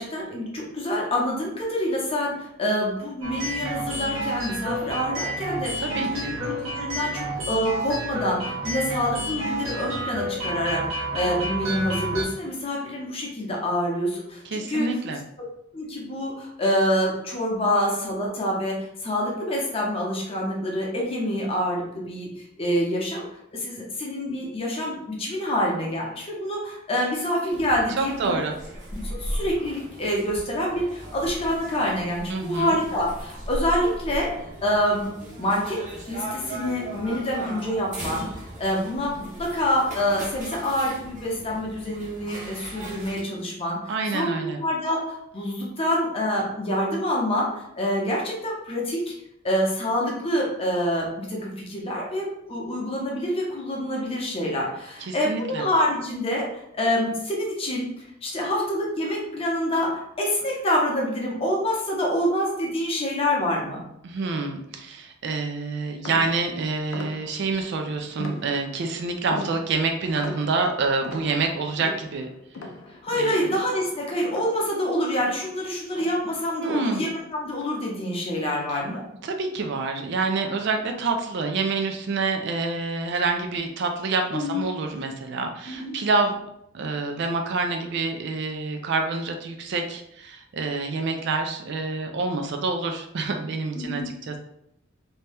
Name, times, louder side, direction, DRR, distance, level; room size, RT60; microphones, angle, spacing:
voice 1, 0.0-14.9 15.7-18.8 19.0-28.4 28.9-34.3 34.6-35.8 36.1-49.0 49.4-56.5 56.7-63.8 72.9-79.0 84.3-84.7 85.7-86.0 93.7-94.1, equal, 30° left, -2 dB, 0.7 m, -26 dB
sound 1, 3.2-12.2, right 1 dB, 90° right, 0.8 m, -30 dB
voice 2, 5.8-6.3 14.4-15.2 28.0-28.6 32.3-32.8 43.9-44.6 55.0-55.6 64.0-72.3 73.1-73.4 76.6-77.0 78.7-78.8 79.2-86.4 86.7-94.4, right 3 dB, 60° right, 4 dB, 0.4 m, -27 dB
sound 2, 27.5-43.2, right 1 dB, 40° right, 0.8 m, -37 dB
sound 3, 66.0-67.6 68.2-68.9 69.3-74.9 75.2-77.2 77.5-77.9 78.4-78.9, left 2 dB, 80° left, 0.4 m, -40 dB
2.7 x 2.2 x 3.3 m, 0.77 s
head